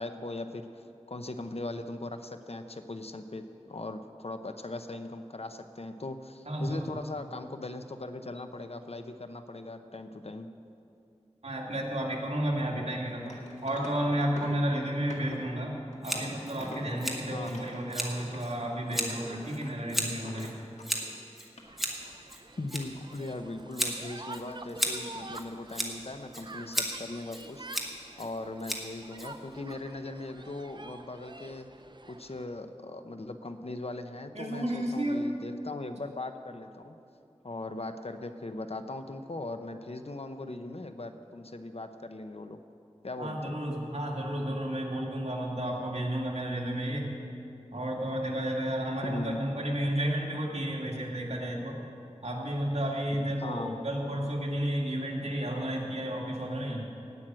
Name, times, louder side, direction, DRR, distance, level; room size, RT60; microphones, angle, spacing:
voice 1, 0.0-10.5 17.3-17.7 21.9-22.0 22.6-27.7 28.2-31.7 32.1-36.9 37.4-42.6 43.0-43.6 49.0-49.4 53.1-53.7, left 2 dB, 60° left, 8 dB, 0.8 m, -39 dB
voice 2, 6.5-7.0 11.4-13.3 13.6-20.5 34.3-35.2 43.2-47.1 47.7-51.8 52.2-56.9, right 1 dB, 70° right, -2 dB, 2.3 m, -32 dB
sound 1, 13.1-14.7 15.1-15.4 15.9-21.1 21.5-21.6, left 1 dB, 80° left, 1.9 m, -45 dB
Scissors, 16.0-29.7, equal, ahead, 1.7 m, -37 dB
sound 2, 21.6-32.4, right 2 dB, 40° right, 0.6 m, -48 dB
17.5 x 6.1 x 9.0 m, 2.7 s
wide cardioid pair, 50°, 12 cm